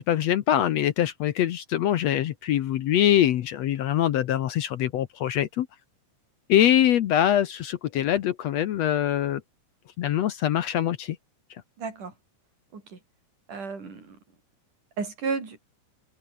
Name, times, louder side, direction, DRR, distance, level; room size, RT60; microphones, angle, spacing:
voice 1, 0.0-5.7 6.5-9.4 10.0-11.2, left 11 dB, 65° left, 1.9 m, -23 dB
voice 2, 11.8-12.1 12.7-13.0 13.5-14.2 15.0-15.6, right 5 dB, 75° right, 6.7 m, -33 dB
omnidirectional pair, 3.7 m